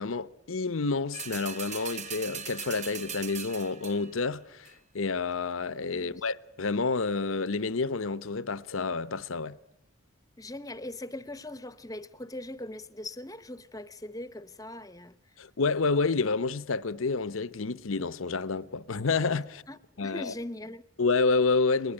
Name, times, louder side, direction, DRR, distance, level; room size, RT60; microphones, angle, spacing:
voice 1, 0.0-9.6 15.4-19.6 20.0-20.3 21.0-21.9, left 4 dB, 85° left, 0.9 m, -29 dB
sound 1, 1.1-4.2 4.6-4.7, right 7 dB, 35° right, 1.1 m, -40 dB
voice 2, 10.4-15.2 19.7-20.8, left 1 dB, 15° left, 0.8 m, -40 dB
21.5 x 19.5 x 10.0 m
head